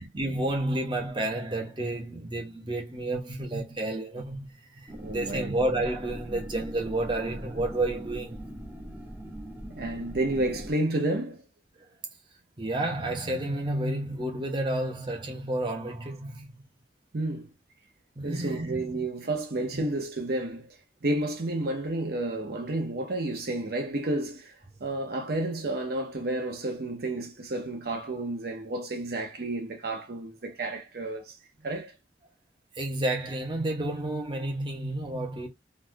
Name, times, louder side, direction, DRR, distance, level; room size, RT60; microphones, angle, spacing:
voice 1, 0.0-8.4 12.6-16.5 18.2-19.0 19.7-19.8 32.8-35.5, right 1 dB, 25° right, 0.8 m, -31 dB
sound 1, 4.9-10.7, equal, 10° right, 0.5 m, -41 dB
voice 2, 4.9-5.6 9.8-11.4 17.1-17.5 18.2-31.4 31.6-32.0, right 2 dB, 60° right, 0.7 m, -31 dB
4.0 x 2.3 x 2.6 m
head